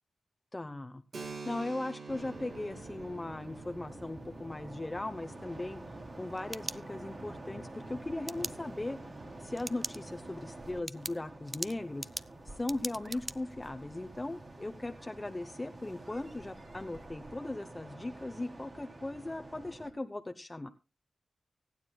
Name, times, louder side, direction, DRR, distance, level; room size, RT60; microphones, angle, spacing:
voice 1, 0.5-9.0 9.4-12.1 12.4-20.7, left 2 dB, 25° left, 9 dB, 0.8 m, -38 dB
Keyboard (musical), 1.1-8.5, right 4 dB, 85° right, 2.7 m, -49 dB
sound 1, 2.1-19.9, right 2 dB, 45° right, 2.9 m, -48 dB
sound 2, 6.1-7.3 8.3-8.5 9.6-10.0 10.4-10.5 10.9-13.4, right 2 dB, 25° right, 0.5 m, -40 dB
25.0 x 9.6 x 2.3 m, 0.29 s
wide cardioid pair, 80°, 0 cm